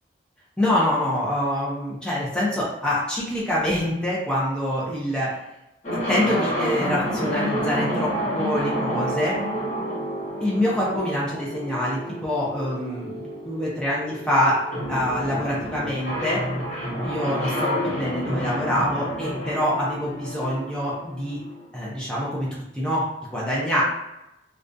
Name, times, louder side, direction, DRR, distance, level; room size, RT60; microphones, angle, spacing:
voice 1, 0.6-5.3 5.9-9.4 10.4-14.6 14.9-16.4 17.0-21.4 21.7-23.1 23.3-23.8, left 1 dB, 5° left, -7 dB, 0.4 m, -25 dB
sound 1, 5.8-21.6, equal, 40° left, 0.8 m, -29 dB
2.4 x 2.2 x 2.5 m, 0.91 s
head